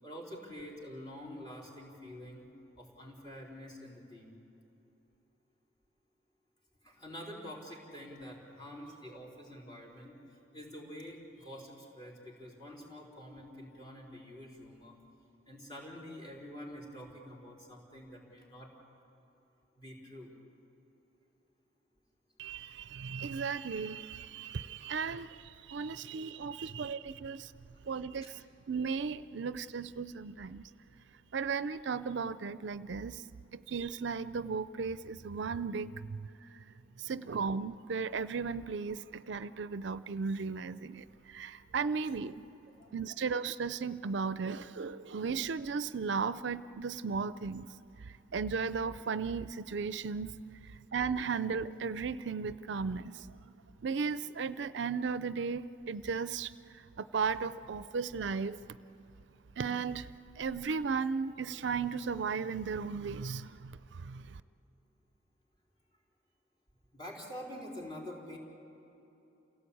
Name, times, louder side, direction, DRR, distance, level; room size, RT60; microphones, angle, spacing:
voice 1, 0.0-2.4 2.8-4.3 6.8-15.0 15.5-18.7 19.8-20.3 26.0-26.8 27.7-27.9 28.2-28.3 42.7-43.1 66.9-68.4, equal, 25° left, -2 dB, 4.2 m, -47 dB
voice 2, 22.4-27.5 27.9-28.4 28.7-30.6 31.3-33.2 33.5-36.6 37.0-42.5 42.9-47.7 48.0-50.4 50.6-53.5 53.8-58.6 59.6-60.1 60.4-64.4, right 5 dB, 65° right, 14 dB, 0.5 m, -36 dB
28.5 x 17.5 x 8.5 m, 3.0 s
head